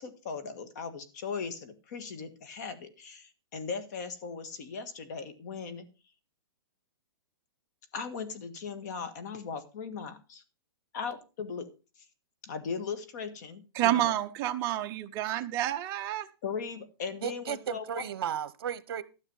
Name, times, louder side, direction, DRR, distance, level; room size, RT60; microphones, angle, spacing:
voice 1, 0.0-5.8 7.9-10.4 10.9-11.7 12.4-14.1 16.4-18.0, left 5 dB, 40° left, 1.8 m, -38 dB
voice 2, 13.7-16.3, right 13 dB, 20° right, 0.7 m, -29 dB
voice 3, 17.2-19.0, right 9 dB, 60° right, 1.1 m, -34 dB
13.0 x 6.5 x 5.5 m
hypercardioid pair, 170°, 13 cm